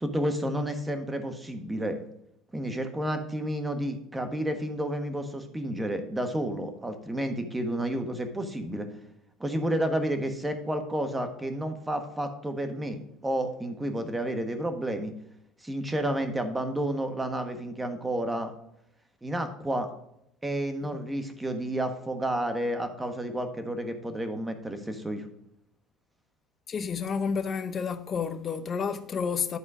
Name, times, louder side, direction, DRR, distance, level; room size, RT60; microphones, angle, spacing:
voice 1, 0.0-2.0 2.5-8.9 9.4-15.1 15.6-18.5 19.2-19.9 20.4-25.3, right 1 dB, 10° right, 1.4 m, -31 dB
voice 2, 26.7-29.6, left 6 dB, 35° left, 0.8 m, -30 dB
11.0 x 4.3 x 4.9 m
supercardioid pair, 120°, 0 cm